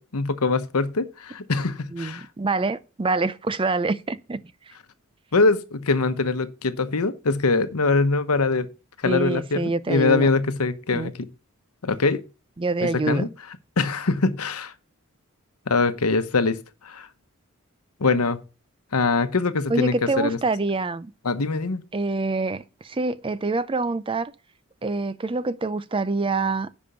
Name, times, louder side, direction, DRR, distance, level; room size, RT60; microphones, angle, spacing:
voice 1, 0.0-2.3 5.3-8.7 9.0-11.3 11.8-12.2 12.8-13.3 13.8-14.7 15.7-16.6 16.8-17.1 18.0-18.4 18.9-20.4 21.2-21.8, left 3 dB, 90° left, 1.0 m, -23 dB
voice 2, 1.9-4.4 9.0-10.3 10.9-11.1 12.6-13.3 19.7-21.1 21.9-24.3 24.8-26.7, right 3 dB, 25° right, 0.4 m, -26 dB
10.0 x 5.3 x 5.7 m
head